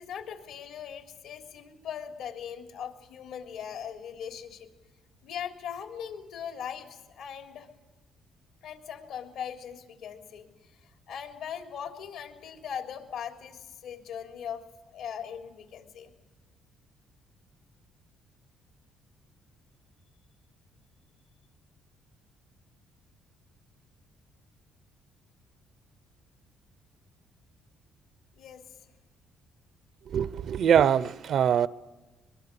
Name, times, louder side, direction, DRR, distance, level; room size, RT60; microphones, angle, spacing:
voice 1, 0.0-4.7 5.2-7.7 8.6-14.7 14.9-16.1 28.3-28.6, left 8 dB, 80° left, 3.5 m, -40 dB
voice 2, 30.1-31.7, right 8 dB, 55° right, 0.7 m, -23 dB
23.5 x 22.0 x 6.9 m
cardioid pair, 120°, 0 cm